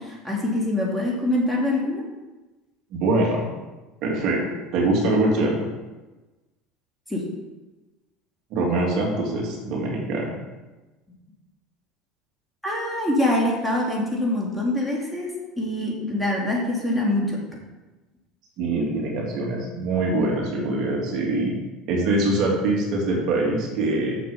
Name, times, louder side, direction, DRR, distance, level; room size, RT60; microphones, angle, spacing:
voice 1, 0.0-2.1 7.1-7.2 12.6-17.4, left 1 dB, 5° left, -3 dB, 2.9 m, -24 dB
voice 2, 2.9-3.5 4.0-4.4 4.7-5.7 8.5-10.4 18.6-21.5 21.9-24.2, right 2 dB, 60° right, -2 dB, 2.7 m, -23 dB
7.1 x 5.9 x 7.2 m, 1.1 s
supercardioid pair, 90°, 0 cm